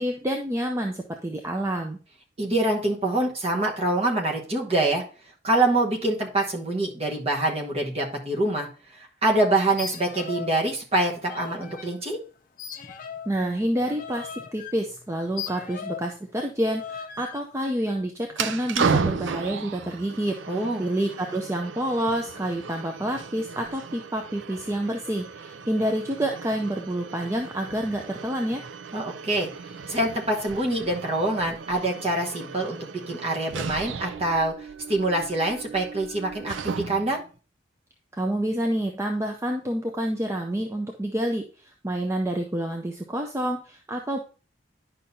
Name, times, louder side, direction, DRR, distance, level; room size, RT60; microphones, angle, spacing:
voice 1, 0.0-2.0 13.3-20.4 20.8-28.6 38.1-44.2, right 1 dB, 15° right, 3 dB, 0.5 m, -28 dB
voice 2, 2.4-5.0 5.4-8.7 8.9-12.2 20.5-20.8 28.9-29.5 29.9-32.8 33.1-37.2, right 2 dB, 30° right, 0 dB, 1.2 m, -25 dB
sound 1, 9.7-10.6 10.8-11.9 12.6-16.2 16.7-17.4, left 7 dB, 45° left, 0.6 m, -38 dB
sound 2, 18.3-37.2, right 5 dB, 75° right, 0.5 m, -34 dB
10.0 x 5.6 x 2.7 m, 0.37 s
head